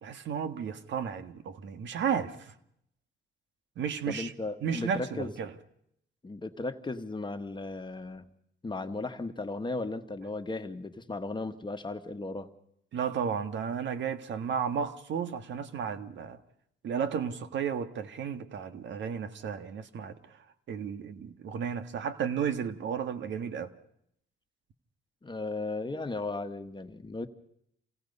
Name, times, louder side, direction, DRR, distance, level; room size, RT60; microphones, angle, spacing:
voice 1, 0.0-2.5 3.8-4.3 4.6-5.5 12.9-16.4 16.8-20.1 20.7-23.7, right 7 dB, 65° right, 1.6 m, -33 dB
voice 2, 4.1-5.3 6.2-8.3 8.6-12.5 25.2-27.3, left 3 dB, 25° left, 1.5 m, -36 dB
28.0 x 17.5 x 5.5 m
cardioid pair, 90°, 20 cm